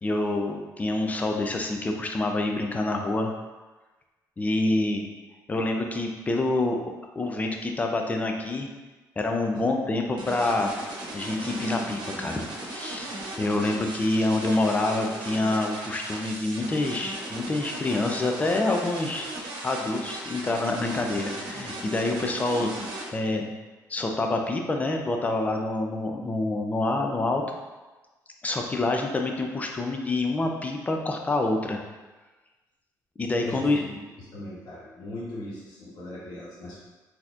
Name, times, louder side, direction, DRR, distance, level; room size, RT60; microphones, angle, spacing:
voice 1, 0.0-3.3 4.4-5.1 5.5-6.8 7.2-8.7 9.2-10.7 11.1-23.5 23.9-27.4 28.4-31.8 33.2-33.8, left 2 dB, 20° left, 3 dB, 0.4 m, -27 dB
sound 1, 10.2-23.0, right 2 dB, 90° right, 0.9 m, -37 dB
voice 2, 33.4-33.9 34.3-36.8, left 1 dB, 70° left, -7 dB, 1.2 m, -39 dB
4.0 x 2.8 x 2.5 m, 1.2 s
cardioid pair, 110°, 7 cm